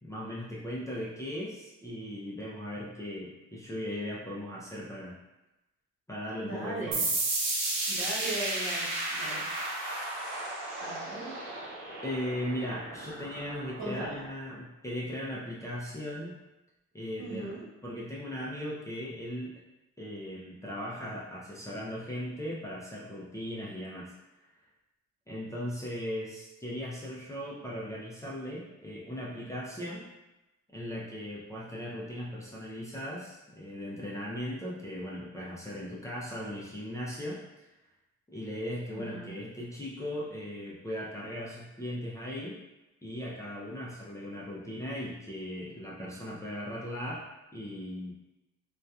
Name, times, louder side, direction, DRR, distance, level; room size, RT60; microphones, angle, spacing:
voice 1, 0.0-5.2 6.1-7.1 12.0-16.4 16.9-17.6 17.8-19.5 20.0-24.1 25.3-30.1 30.7-37.4 38.3-42.6 43.0-47.3 47.5-48.1, equal, 10° left, -7 dB, 0.5 m, -38 dB
voice 2, 6.4-7.0 7.9-9.4 10.8-11.4 13.8-14.2 17.2-17.6 38.9-39.4, right 2 dB, 60° right, -6 dB, 1.2 m, -38 dB
sound 1, 6.9-14.3, right 2 dB, 80° right, 0.7 m, -34 dB
2.6 x 2.3 x 2.3 m, 0.98 s
cardioid pair, 90°, 30 cm